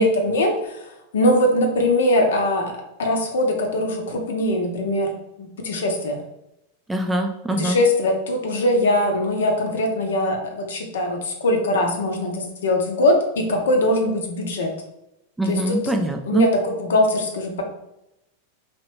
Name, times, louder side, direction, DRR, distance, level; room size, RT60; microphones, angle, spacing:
voice 1, 0.0-2.7 3.0-6.2 7.6-14.7 15.4-15.9 16.3-17.6, left 1 dB, 60° left, 3 dB, 0.6 m, -21 dB
voice 2, 6.9-7.8 15.4-16.5, right 1 dB, 5° right, 3 dB, 0.3 m, -23 dB
2.9 x 2.9 x 3.2 m, 0.87 s
figure-of-eight pair, 90°, 0 cm